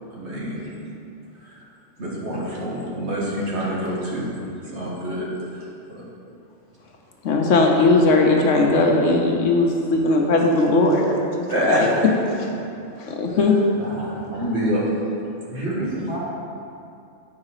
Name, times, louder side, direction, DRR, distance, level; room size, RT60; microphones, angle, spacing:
voice 1, 0.1-0.6 1.4-1.6 2.0-4.3 4.7-5.6 5.9-6.0 11.5-12.1 13.8-14.8 15.5-15.8, equal, 65° right, -5 dB, 1.8 m, -26 dB
voice 2, 7.2-11.9 12.4-12.5 13.0-13.5, left 2 dB, 80° left, 1 dB, 1.2 m, -18 dB
voice 3, 15.5-16.2, right 1 dB, 45° left, -4 dB, 1.5 m, -30 dB
8.3 x 4.9 x 4.8 m, 2.6 s
omnidirectional pair, 1.3 m